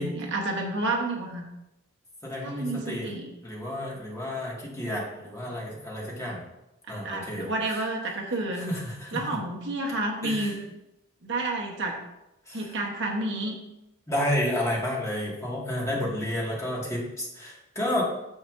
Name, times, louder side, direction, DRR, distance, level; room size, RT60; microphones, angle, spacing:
voice 1, 0.0-1.4 2.4-3.3 5.5-5.6 6.9-8.7 9.1-10.6 11.2-12.0 12.5-13.6, right 2 dB, 60° right, 1 dB, 1.1 m, -30 dB
voice 2, 2.2-3.1 3.4-6.4 6.9-7.9 8.5-9.4 10.2-10.6 12.5-12.8 14.1-18.0, left 1 dB, 15° left, -4 dB, 1.9 m, -31 dB
9.3 x 7.3 x 2.6 m, 0.92 s
head